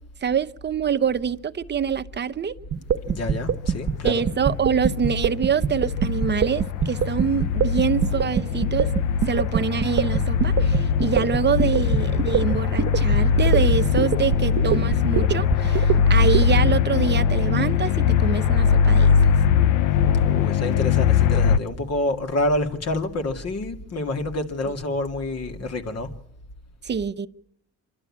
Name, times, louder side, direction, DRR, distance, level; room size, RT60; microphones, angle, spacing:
voice 1, 0.2-2.5 4.0-8.9 9.3-19.1 26.8-27.3, right 7 dB, 35° right, 0.8 m, -25 dB
sound 1, 2.7-16.4, right 8 dB, 55° right, 1.1 m, -23 dB
sound 2, 3.0-21.6, left 7 dB, 90° left, 0.7 m, -21 dB
voice 2, 3.1-4.2 20.2-26.1, left 1 dB, 55° left, 2.4 m, -27 dB
26.0 x 12.0 x 8.7 m
cardioid pair, 90°, 30 cm